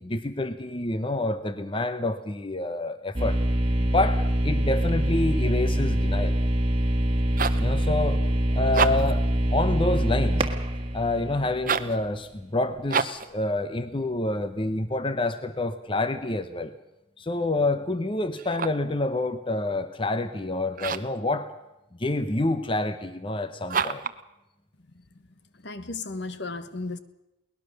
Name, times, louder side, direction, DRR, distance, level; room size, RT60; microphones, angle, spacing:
voice 1, 0.0-3.4 3.8-6.4 7.6-8.2 8.5-10.5 10.9-16.7 17.2-21.5 22.0-24.0, left 2 dB, 25° left, 0.8 m, -28 dB
sound 1, 3.1-12.0, equal, 25° right, 1.7 m, -24 dB
sound 2, 7.1-7.7 8.6-9.2 11.6-12.0 12.9-13.3 18.3-18.9 20.7-21.2 23.7-24.2, right 5 dB, 40° right, 0.8 m, -28 dB
voice 2, 25.6-27.0, left 3 dB, 55° left, 1.2 m, -34 dB
22.5 x 19.0 x 6.7 m
head